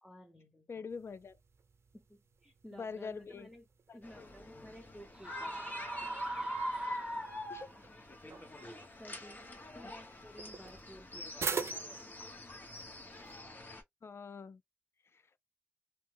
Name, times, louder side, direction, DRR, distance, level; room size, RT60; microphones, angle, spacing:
voice 1, 0.0-0.9 1.9-3.7 3.9-5.9 8.6-12.2, equal, 5° left, 0.9 m, -55 dB
voice 2, 0.7-1.4 2.7-3.5 3.9-4.0 7.5-7.7 14.0-14.6 15.1-15.2, left 5 dB, 65° left, 0.4 m, -44 dB
sound 1, 0.9-13.4, right 5 dB, 85° right, 0.4 m, -46 dB
sound 2, 4.0-13.8, left 1 dB, 45° left, 1.0 m, -45 dB
sound 3, 5.1-7.8, right 2 dB, 20° right, 0.9 m, -40 dB
3.0 x 2.1 x 3.2 m
wide cardioid pair, 70°, 4 cm